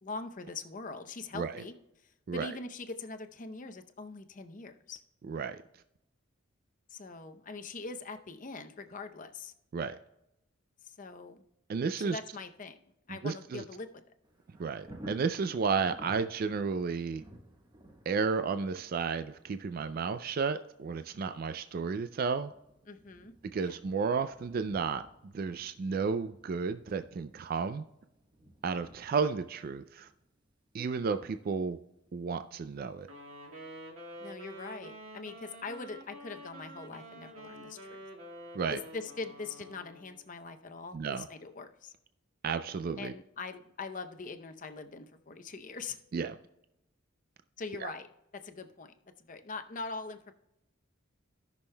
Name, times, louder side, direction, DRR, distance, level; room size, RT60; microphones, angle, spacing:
voice 1, 0.0-1.7 2.0-5.0 6.9-9.5 10.8-11.4 12.0-12.8 13.1-13.9 21.2-21.6 22.9-23.3 23.6-23.8 34.2-38.0 38.7-41.9 43.0-46.0 47.6-48.1 48.3-50.3, left 3 dB, 40° left, 7 dB, 0.7 m, -42 dB
voice 2, 5.3-5.6 9.7-10.0 11.7-12.2 13.1-13.6 14.6-17.2 18.1-22.5 23.4-25.0 25.3-27.8 28.6-30.1 30.7-31.8 32.1-33.1 38.5-38.8 40.9-41.3 42.4-43.1 46.1-46.4 47.8-47.9, right 5 dB, 45° right, 9 dB, 0.3 m, -32 dB
Thunder, 14.2-33.0 33.5-33.6, right 1 dB, 20° right, 1.2 m, -56 dB
Wind instrument woodwind instrument, 33.0-40.3, equal, 85° right, 1.8 m, -48 dB
17.5 x 6.2 x 2.2 m, 0.86 s
head